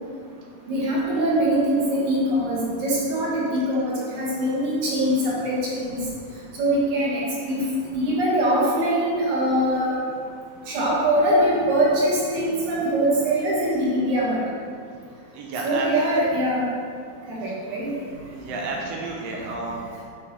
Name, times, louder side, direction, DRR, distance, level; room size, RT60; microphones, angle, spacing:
voice 1, 0.7-6.0 6.5-7.6 7.9-9.9 10.7-14.4 15.6-16.7 17.3-17.9 19.3-19.4, right 1 dB, 50° right, -6 dB, 2.2 m, -23 dB
voice 2, 15.3-15.9 17.5-17.6 18.3-20.0, right 3 dB, 80° right, -1 dB, 1.4 m, -32 dB
8.0 x 5.4 x 4.2 m, 2.2 s
omnidirectional pair, 3.8 m